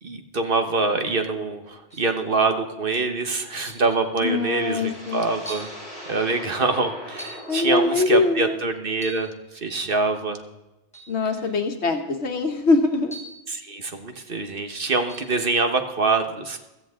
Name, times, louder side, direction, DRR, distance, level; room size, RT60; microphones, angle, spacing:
voice 1, 0.0-5.7 6.1-10.4 13.5-16.6, right 3 dB, 50° right, 6 dB, 1.5 m, -25 dB
sound 1, 1.9-2.2 3.6-4.0 4.8-4.9 5.5-5.8 7.2-7.6 8.9-9.3 10.9-11.2 13.1-13.5 15.1-15.3, right 1 dB, 5° left, 2.1 m, -41 dB
sound 2, 3.6-8.8, equal, 65° right, 4.8 m, -41 dB
voice 2, 4.2-5.2 7.5-8.6 11.1-13.1, left 3 dB, 70° left, 5 dB, 1.4 m, -23 dB
16.0 x 14.0 x 3.7 m, 0.99 s
omnidirectional pair, 1.2 m